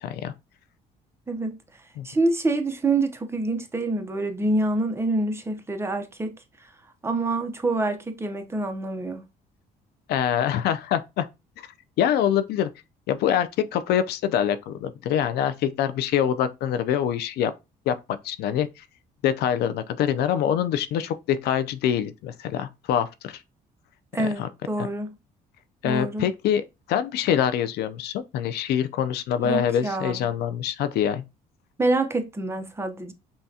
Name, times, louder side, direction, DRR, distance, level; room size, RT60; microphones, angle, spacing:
voice 1, 0.0-0.3 2.0-2.1 10.1-11.3 12.0-12.7 13.1-17.5 17.9-18.0 18.2-18.8 19.2-23.4 24.4-24.5 24.8-24.9 25.8-31.2, left 9 dB, 75° left, 0.5 m, -25 dB
voice 2, 1.3-1.6 2.0-6.4 7.0-9.2 24.1-25.1 25.8-26.3 29.4-30.3 31.8-33.1, right 2 dB, 15° right, 0.7 m, -26 dB
5.5 x 2.3 x 2.7 m
cardioid pair, 110°, 17 cm